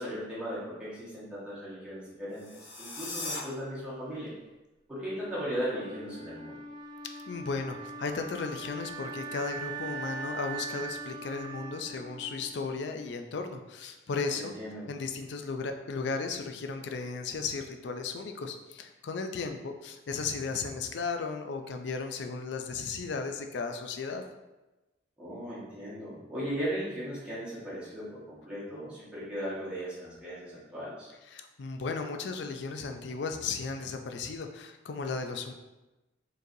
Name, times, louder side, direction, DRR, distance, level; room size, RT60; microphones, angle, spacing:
voice 1, 0.0-2.4 2.8-4.3 4.9-6.6 14.3-14.8 25.2-31.1, equal, 5° right, -10 dB, 1.3 m, -37 dB
sound 1, 2.3-3.4, left 2 dB, 75° left, 0.9 m, -38 dB
Wind instrument woodwind instrument, 4.9-13.0, right 3 dB, 20° right, 0.4 m, -41 dB
voice 2, 7.3-14.6 14.9-24.2 31.3-35.5, left 4 dB, 60° left, 6 dB, 0.4 m, -35 dB
4.5 x 3.1 x 2.7 m, 1.1 s
head